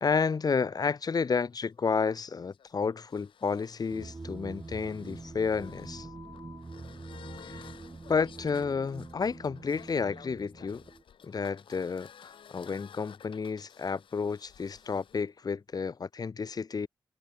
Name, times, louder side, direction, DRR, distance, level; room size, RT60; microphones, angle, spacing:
voice 1, 0.0-6.1 7.4-7.7 8.1-10.8 11.2-16.9, left 5 dB, 50° left, 0.9 m, -31 dB
sound 1, 1.5-15.2, left 8 dB, 75° left, 3.8 m, -54 dB
sound 2, 3.9-11.0, right 3 dB, 35° right, 6.2 m, -45 dB
cardioid pair, 50°, 9 cm